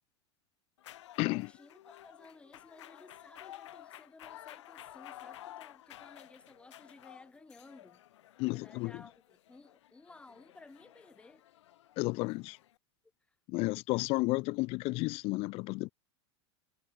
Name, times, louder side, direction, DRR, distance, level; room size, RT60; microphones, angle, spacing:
sound 1, 0.8-12.8, left 13 dB, 85° left, 3.2 m, -53 dB
voice 1, 1.3-8.0 8.4-11.5 13.3-13.4, left 3 dB, 5° left, 1.9 m, -56 dB
voice 2, 8.4-8.9 12.0-12.6 13.5-15.9, left 24 dB, 40° left, 0.5 m, -32 dB
supercardioid pair, 135°, 15 cm